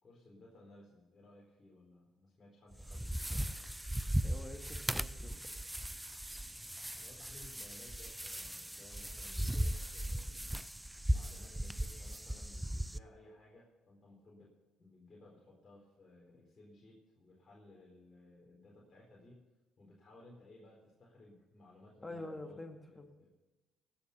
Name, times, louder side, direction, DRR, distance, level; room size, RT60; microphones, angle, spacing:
voice 1, 0.0-3.6 6.9-10.5 11.1-14.5 14.8-19.4 19.8-23.3, left 2 dB, 35° left, -4 dB, 4.3 m, -59 dB
sound 1, 2.7-13.0, right 1 dB, 5° right, 0.5 m, -38 dB
voice 2, 4.2-5.5 22.0-23.1, left 2 dB, 15° left, 4 dB, 2.1 m, -47 dB
16.5 x 7.1 x 6.9 m, 1.1 s
supercardioid pair, 70°, 0 cm